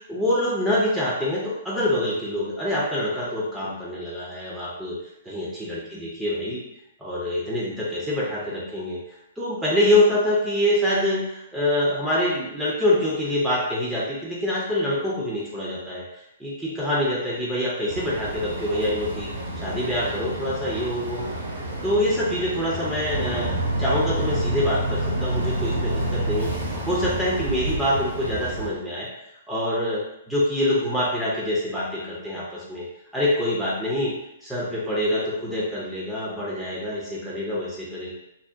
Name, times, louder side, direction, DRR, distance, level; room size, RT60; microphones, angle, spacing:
voice 1, 0.0-5.0 5.2-6.6 7.0-9.0 9.4-23.5 23.8-29.1 29.5-32.8 33.1-34.1 34.4-38.1, left 1 dB, 5° right, -6 dB, 0.5 m, -25 dB
Boat Water vehicle, 17.9-28.7, right 1 dB, 65° right, 0.8 m, -28 dB
2.7 x 2.0 x 2.3 m, 0.85 s
figure-of-eight pair, 115°, 0 cm